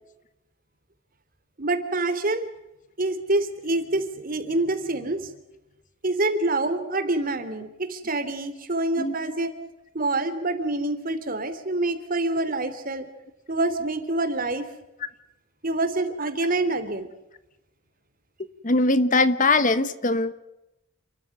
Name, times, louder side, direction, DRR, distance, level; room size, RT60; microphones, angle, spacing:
voice 1, 1.6-2.5 3.0-5.3 6.0-9.5 9.9-13.1 13.5-14.6 15.6-17.1, right 2 dB, 45° right, 3.1 m, -26 dB
voice 2, 18.6-20.3, left 2 dB, 40° left, 1.2 m, -21 dB
29.0 x 14.0 x 9.7 m
head